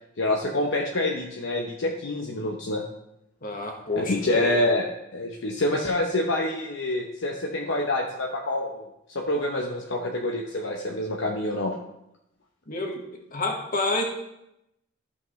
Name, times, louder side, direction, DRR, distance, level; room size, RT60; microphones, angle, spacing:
voice 1, 0.2-2.8 4.0-8.9 9.1-11.8, left 1 dB, 60° left, 0 dB, 0.8 m, -27 dB
voice 2, 3.4-4.7 12.7-13.0 13.3-14.0, left 2 dB, 45° left, 2 dB, 1.4 m, -29 dB
13.0 x 5.9 x 3.2 m, 0.83 s
head